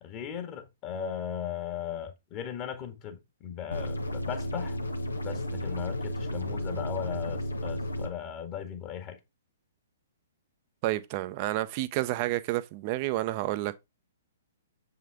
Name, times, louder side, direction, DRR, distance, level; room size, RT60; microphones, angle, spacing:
voice 1, 0.0-4.8 5.2-9.2, left 8 dB, 30° left, 1.7 m, -37 dB
sound 1, 3.7-8.1, equal, 80° left, 1.2 m, -33 dB
voice 2, 10.8-13.8, right 16 dB, 35° right, 0.7 m, -30 dB
7.5 x 5.8 x 3.5 m
figure-of-eight pair, 120°, 0 cm